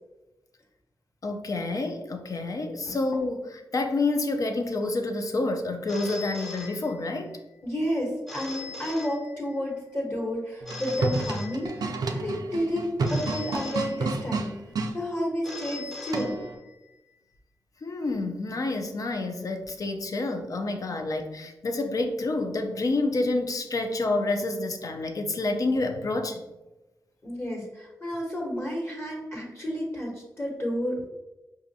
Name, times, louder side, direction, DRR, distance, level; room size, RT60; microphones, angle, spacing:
voice 1, 1.2-7.3 17.8-26.5, left 2 dB, 55° left, 5 dB, 0.5 m, -28 dB
Telephone, 5.9-7.4 8.3-9.8 10.7-12.2 13.0-14.5 15.4-16.9, left 3 dB, ahead, 0.5 m, -41 dB
voice 2, 7.6-14.5 14.9-16.4 27.2-31.1, equal, 40° left, -2 dB, 1.2 m, -31 dB
sound 1, 10.6-14.9 16.1-16.5, right 3 dB, 70° right, 0.4 m, -30 dB
5.1 x 2.4 x 2.7 m, 1.0 s
wide cardioid pair, 80°, 7 cm